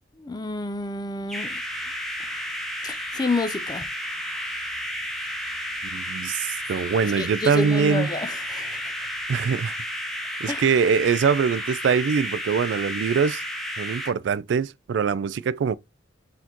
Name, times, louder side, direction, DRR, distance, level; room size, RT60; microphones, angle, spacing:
voice 1, 0.2-1.6 2.8-3.9 7.0-8.9 10.5-10.6, left 2 dB, 20° left, 0.4 m, -29 dB
sound 1, 1.3-14.1, equal, ahead, 0.8 m, -32 dB
voice 2, 5.9-8.1 9.3-9.8 10.4-13.4 13.8-15.7, right 6 dB, 75° right, 0.3 m, -23 dB
4.2 x 3.9 x 2.9 m
head